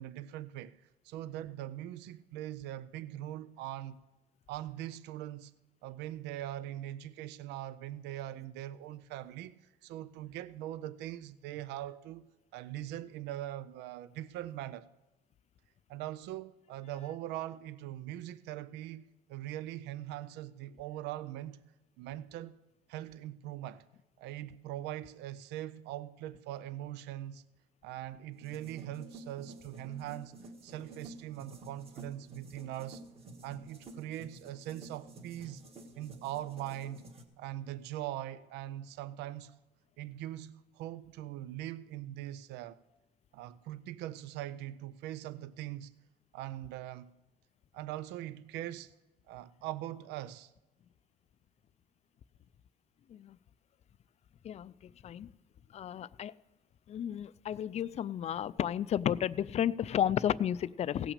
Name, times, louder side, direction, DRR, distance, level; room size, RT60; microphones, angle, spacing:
voice 1, 0.0-4.0 4.5-5.5 5.8-12.2 12.5-14.9 15.9-21.6 22.0-22.6 22.9-23.8 24.2-27.4 27.8-30.4 30.6-33.0 33.4-35.6 36.0-37.1 37.4-39.5 40.0-42.8 43.3-45.9 46.3-47.1 47.7-48.9 49.3-50.5, right 13 dB, 85° right, 0.4 m, -41 dB
sound 1, 28.3-37.2, right 2 dB, 35° right, 1.5 m, -51 dB
voice 2, 55.7-56.3 56.9-61.1, left 10 dB, 40° left, 0.4 m, -32 dB
16.5 x 6.0 x 6.6 m
cardioid pair, 110°, 17 cm